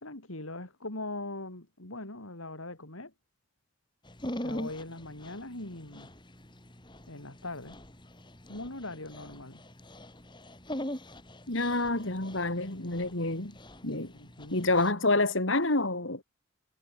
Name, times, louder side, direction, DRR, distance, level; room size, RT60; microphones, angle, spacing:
voice 1, 0.0-3.1 4.4-6.1 7.1-7.8 8.5-9.6 14.1-14.7, left 2 dB, 85° left, 5.2 m, -41 dB
Dog, 4.1-14.9, left 1 dB, 20° left, 3.3 m, -43 dB
voice 2, 11.5-13.5 13.8-14.1 14.5-16.2, left 2 dB, 70° left, 3.3 m, -28 dB
head